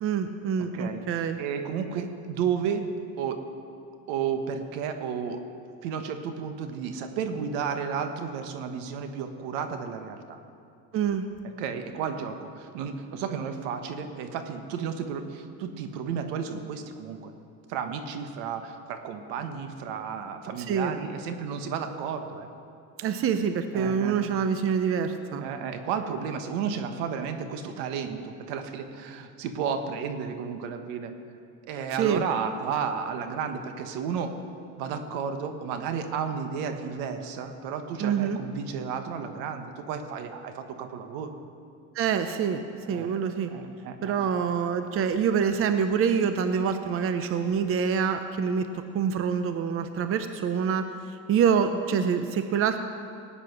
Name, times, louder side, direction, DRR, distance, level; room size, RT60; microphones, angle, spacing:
voice 1, 0.0-1.4 10.9-11.2 20.5-20.9 23.0-25.4 32.0-32.2 38.0-38.4 41.9-42.6 42.9-43.5 44.0-52.8, right 7 dB, 35° right, 8 dB, 0.7 m, -26 dB
voice 2, 1.4-2.8 3.2-3.4 4.1-5.4 5.8-10.4 11.6-17.3 17.7-22.5 23.7-24.2 25.4-31.1 31.7-34.3 34.8-41.3 42.9-43.1 43.5-44.3, right 7 dB, 80° right, 7 dB, 1.5 m, -32 dB
18.5 x 9.0 x 6.1 m, 2.5 s
cardioid pair, 135°, 39 cm